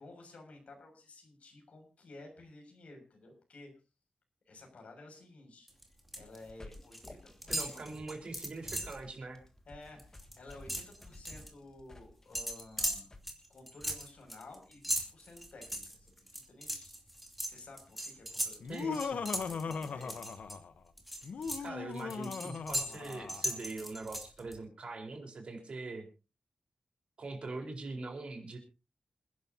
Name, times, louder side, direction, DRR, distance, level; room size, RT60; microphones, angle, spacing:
voice 1, 0.0-3.7 4.4-5.7 6.1-7.8 9.6-13.1 13.5-17.0 17.4-19.1 19.5-20.2, left 2 dB, 60° left, 2 dB, 6.6 m, -53 dB
sound 1, 5.7-6.4 6.6-7.1 7.4-9.0 9.4-9.6 9.9-11.5 12.3-20.6 21.0-24.6, equal, ahead, 2.7 m, -38 dB
sound 2, 6.2-13.2, left 2 dB, 20° left, 1.6 m, -53 dB
voice 2, 7.5-9.4 18.7-19.2 21.6-26.1 27.2-28.6, right 3 dB, 50° right, 2 dB, 4.5 m, -42 dB
Laughter, 18.6-20.8 21.2-23.6, left 5 dB, 85° left, 1.1 m, -38 dB
28.0 x 11.0 x 2.9 m, 0.31 s
wide cardioid pair, 175°, 2 cm